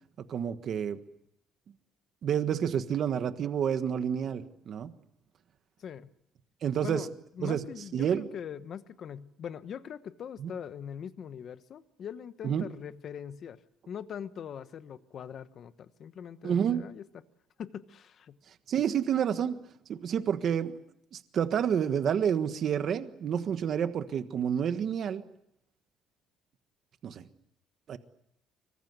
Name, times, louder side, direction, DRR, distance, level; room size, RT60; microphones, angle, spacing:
voice 1, 0.2-1.0 2.2-4.9 6.6-7.0 7.4-7.6 7.9-8.3 10.4-10.5 12.4-12.6 16.4-16.9 18.7-19.6 19.9-20.8 21.1-25.2 27.0-27.3 27.9-28.0, right 8 dB, 40° right, 10 dB, 1.4 m, -29 dB
voice 2, 5.8-6.1 6.8-7.1 7.4-13.6 13.9-17.1 17.6-18.4, left 8 dB, 40° left, 12 dB, 1.2 m, -42 dB
25.5 x 24.0 x 8.1 m, 0.76 s
cardioid pair, 175°, 0 cm